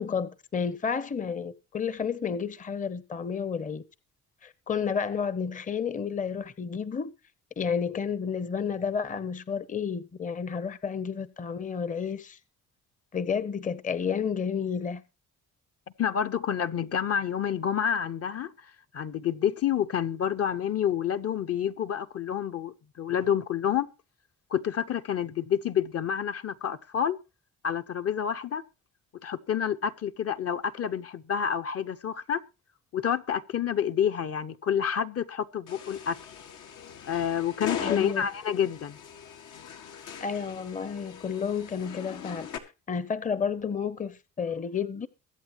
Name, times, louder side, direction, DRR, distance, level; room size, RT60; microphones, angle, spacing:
voice 1, 0.0-3.8 4.4-7.1 7.6-12.4 13.1-15.0 37.8-38.3 40.2-42.5 42.9-45.1, left 6 dB, 25° left, 0.8 m, -31 dB
voice 2, 16.0-18.5 18.9-23.9 24.5-27.2 27.6-28.6 29.2-32.4 32.9-36.2 37.1-39.0, left 8 dB, 50° left, 0.9 m, -28 dB
sound 1, 35.7-42.6, left 8 dB, 85° left, 1.9 m, -40 dB
22.5 x 8.3 x 3.0 m
cardioid pair, 90°, 30 cm